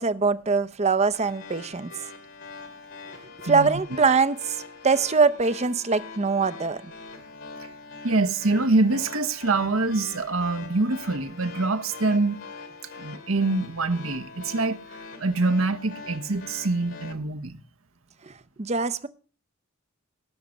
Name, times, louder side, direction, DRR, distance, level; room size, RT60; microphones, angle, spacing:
voice 1, 0.0-2.1 3.4-6.8 18.3-18.4 18.6-19.1, right 4 dB, 30° right, 0.7 m, -23 dB
sound 1, 1.1-17.1, left 4 dB, 65° left, 2.6 m, -43 dB
voice 2, 8.0-12.4 13.0-14.8 15.2-17.6, right 3 dB, 80° right, 1.2 m, -25 dB
18.5 x 6.6 x 7.1 m
head